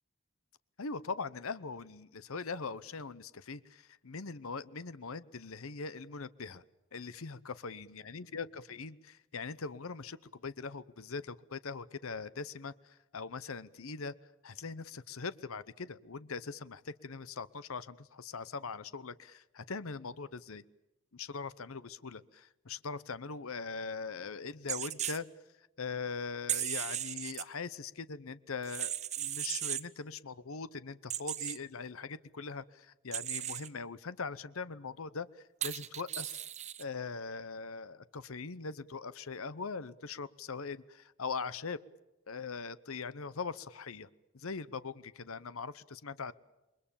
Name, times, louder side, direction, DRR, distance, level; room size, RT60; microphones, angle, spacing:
voice 1, 0.8-6.6 6.9-14.1 14.4-20.6 21.1-25.3 25.6-36.4 36.8-41.8 42.3-44.1 44.3-46.3, left 4 dB, 70° left, 16 dB, 0.8 m, -41 dB
sound 1, 24.7-25.2 26.5-27.4 28.6-29.9 31.1-31.6 33.1-33.7 35.6-36.8, right 11 dB, 30° right, 0.9 m, -36 dB
28.0 x 23.0 x 7.2 m, 0.98 s
head